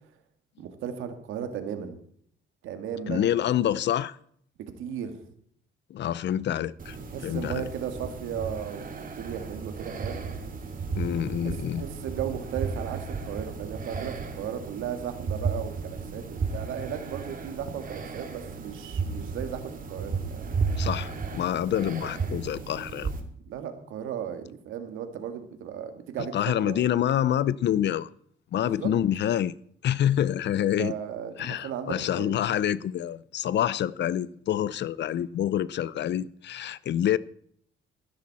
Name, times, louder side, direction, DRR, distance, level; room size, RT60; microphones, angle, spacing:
voice 1, 0.6-2.0 2.6-3.4 4.8-5.2 7.1-10.3 11.1-19.6 19.9-20.5 23.5-26.8 28.5-28.9 30.6-32.6, right 8 dB, 90° right, 2.2 m, -36 dB
voice 2, 3.1-4.2 5.9-7.0 7.2-7.7 11.0-11.8 20.8-23.1 26.3-28.1 28.5-29.5 29.8-30.9 31.4-37.2, left 10 dB, 60° left, 0.7 m, -27 dB
sound 1, 6.8-23.2, right 5 dB, 45° right, 2.5 m, -34 dB
15.0 x 12.5 x 4.3 m
cardioid pair, 90°, 20 cm